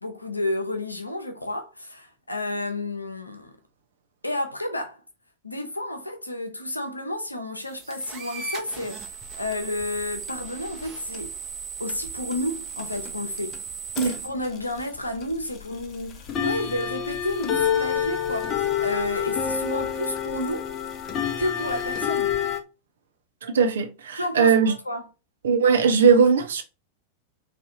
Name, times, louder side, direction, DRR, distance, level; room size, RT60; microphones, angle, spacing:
voice 1, 0.0-3.5 4.2-5.0 5.4-11.4 11.8-13.6 14.1-20.7 21.4-22.4 24.1-25.1, left 1 dB, 85° left, 0.6 m, -31 dB
sound 1, 7.6-14.3, right 7 dB, 30° right, 1.0 m, -37 dB
sound 2, 9.0-10.8 11.1-11.6 11.9-22.6, left 8 dB, 30° left, 0.6 m, -28 dB
voice 2, 23.4-24.7 25.4-26.6, right 6 dB, 65° right, 0.6 m, -19 dB
3.3 x 2.6 x 2.8 m
figure-of-eight pair, 90°, 0 cm